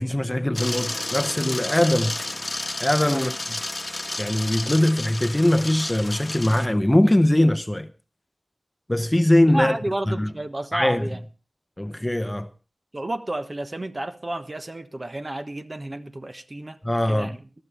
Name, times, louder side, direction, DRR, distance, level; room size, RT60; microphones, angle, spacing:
voice 1, 0.0-2.2 2.8-3.6 4.2-7.9 8.9-9.8 10.1-10.3 10.7-11.1 11.8-12.5 16.8-17.3, left 1 dB, 15° left, 0.8 m, -21 dB
sound 1, 0.5-6.7, left 2 dB, 30° left, 1.3 m, -31 dB
voice 2, 9.5-11.2 12.9-16.8 17.1-17.4, right 1 dB, 40° right, 1.2 m, -31 dB
21.5 x 12.5 x 3.3 m
wide cardioid pair, 65°, 0 cm